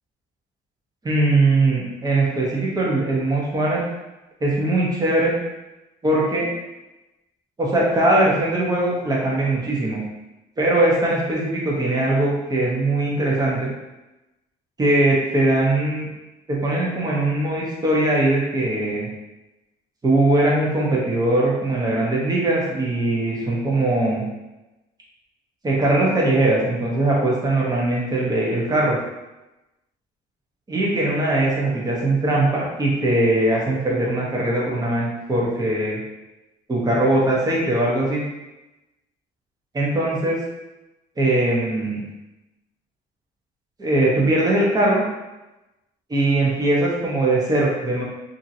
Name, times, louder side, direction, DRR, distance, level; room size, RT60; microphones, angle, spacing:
voice 1, 1.0-3.8 4.4-5.3 6.0-6.5 7.6-10.0 10.6-13.7 14.8-16.1 16.5-19.1 20.0-24.3 25.6-29.0 30.7-36.0 36.7-38.2 39.7-40.4 41.2-42.0 43.8-45.0 46.1-48.0, right 2 dB, 20° right, -4 dB, 0.9 m, -20 dB
2.8 x 2.6 x 2.7 m, 1.0 s
cardioid pair, 110°, 17 cm